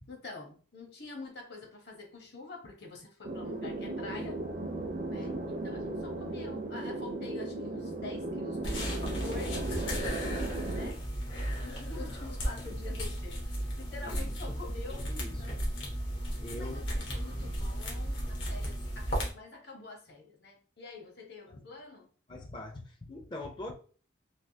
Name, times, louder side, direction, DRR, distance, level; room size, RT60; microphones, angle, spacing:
voice 1, 0.1-4.4 5.1-8.8 9.1-10.3 10.7-11.0 11.6-15.0 15.4-15.5 16.5-22.1, left 3 dB, 60° left, 1 dB, 1.0 m, -46 dB
sound 1, 3.2-10.9, right 2 dB, 45° right, 0.5 m, -36 dB
sound 2, 8.6-19.3, equal, 80° left, 1.2 m, -35 dB
voice 2, 14.0-15.5 16.2-17.0 21.5-21.6 22.3-23.7, left 2 dB, 25° left, 3 dB, 0.4 m, -44 dB
3.4 x 2.6 x 2.6 m, 0.41 s
head